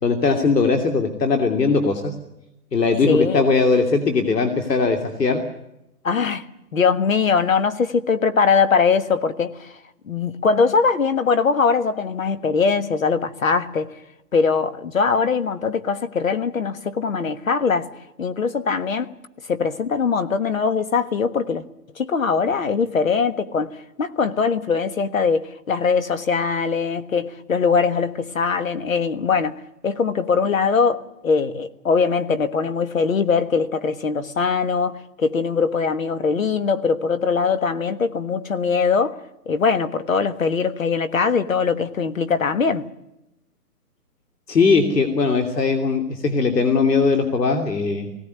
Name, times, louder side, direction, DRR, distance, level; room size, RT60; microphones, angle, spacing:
voice 1, 0.0-2.1 2.7-5.4 44.5-48.1, left 4 dB, 85° left, 3.0 m, -19 dB
voice 2, 3.1-3.4 6.0-6.4 6.7-9.7 10.1-13.9 14.3-17.9 18.2-19.1 19.5-21.6 21.9-39.2 39.5-42.9, left 5 dB, 55° left, 1.5 m, -21 dB
20.5 x 17.0 x 9.5 m
hypercardioid pair, 180°, 47 cm